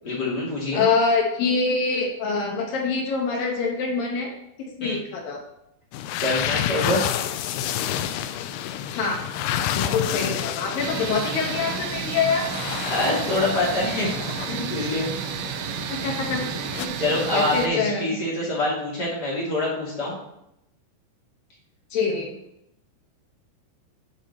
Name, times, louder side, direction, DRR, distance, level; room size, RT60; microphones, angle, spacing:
voice 1, 0.0-0.9 4.8-5.0 6.2-7.1 12.9-14.1 14.5-15.1 17.0-20.2, left 2 dB, 30° left, -5 dB, 2.3 m, -25 dB
voice 2, 0.7-5.4 8.9-9.2 9.7-12.5 16.0-16.5 16.8-18.3 21.9-22.4, left 4 dB, 70° left, 1 dB, 2.4 m, -25 dB
sound 1, 5.9-16.9, left 10 dB, 90° left, 2.2 m, -30 dB
sound 2, 10.8-17.7, right 9 dB, 80° right, 2.4 m, -32 dB
11.0 x 4.5 x 4.2 m, 0.81 s
omnidirectional pair, 5.1 m